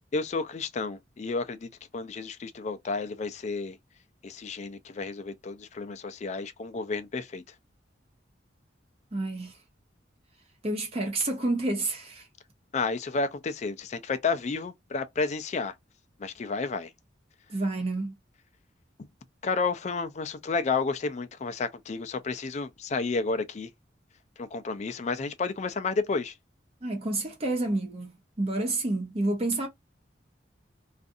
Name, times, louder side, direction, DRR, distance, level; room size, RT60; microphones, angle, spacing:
voice 1, 0.1-3.8 4.2-7.4 12.7-15.7 16.2-16.9 19.4-23.7 24.4-26.3, left 4 dB, 40° left, 0.4 m, -31 dB
voice 2, 9.1-9.5 10.6-12.3 17.5-18.1 26.8-29.7, right 2 dB, 35° right, 0.7 m, -29 dB
2.5 x 2.5 x 2.5 m
head